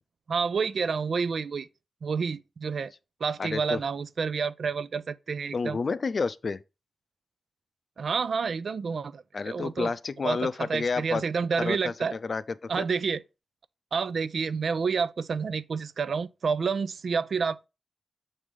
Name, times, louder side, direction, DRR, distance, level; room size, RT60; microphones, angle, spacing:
voice 1, 0.3-1.7 2.0-2.9 3.2-5.8 8.0-9.9 10.2-12.2 12.7-13.2 13.9-17.7, right 5 dB, 75° right, 0.4 m, -29 dB
voice 2, 3.4-3.8 5.5-6.6 9.3-11.2 11.6-12.8, left 4 dB, 60° left, 0.5 m, -30 dB
7.2 x 3.3 x 5.3 m
cardioid pair, 55°, 0 cm